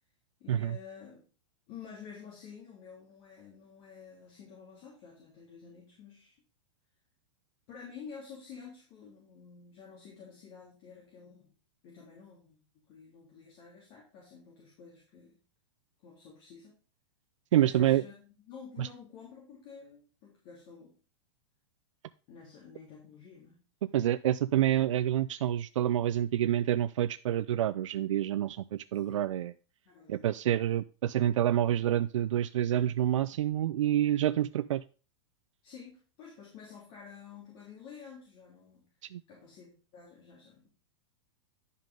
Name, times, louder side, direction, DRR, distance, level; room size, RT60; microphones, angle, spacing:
voice 1, 0.4-1.2 1.7-6.4 7.7-11.5 11.8-15.4 16.0-16.8 17.5-20.9 22.3-23.6 28.9-29.3 29.8-30.3 35.6-38.9 39.3-40.7, left 6 dB, 45° left, -3 dB, 3.2 m, -50 dB
voice 2, 17.5-18.0 18.8-18.9 23.9-29.5 30.1-34.8 39.1-39.2, right 11 dB, 90° right, 13 dB, 0.4 m, -28 dB
10.5 x 5.5 x 3.8 m, 0.36 s
hypercardioid pair, 145°, 16 cm